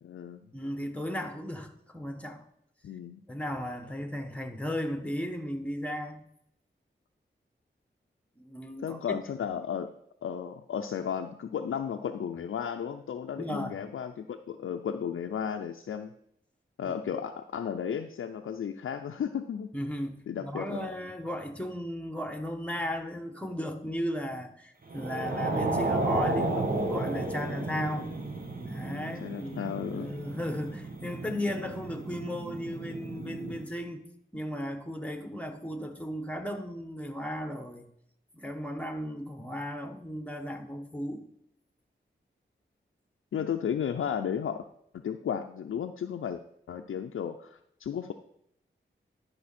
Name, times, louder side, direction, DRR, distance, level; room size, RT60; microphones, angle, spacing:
voice 1, 0.0-0.4 2.8-3.2 8.8-9.9 10.2-16.1 16.8-19.7 20.3-20.9 28.9-30.1 43.3-44.6 45.0-46.4 46.7-48.1, left 8 dB, 85° left, 5 dB, 0.5 m, -34 dB
voice 2, 0.5-2.4 3.3-6.2 8.4-9.2 13.4-13.8 16.8-16.9 19.7-28.1 28.7-34.0 34.3-37.9 38.3-41.2, equal, 5° left, 6 dB, 1.3 m, -35 dB
sound 1, 24.9-33.6, right 2 dB, 45° right, 1.6 m, -33 dB
12.0 x 5.3 x 4.2 m, 0.72 s
cardioid pair, 50°, 20 cm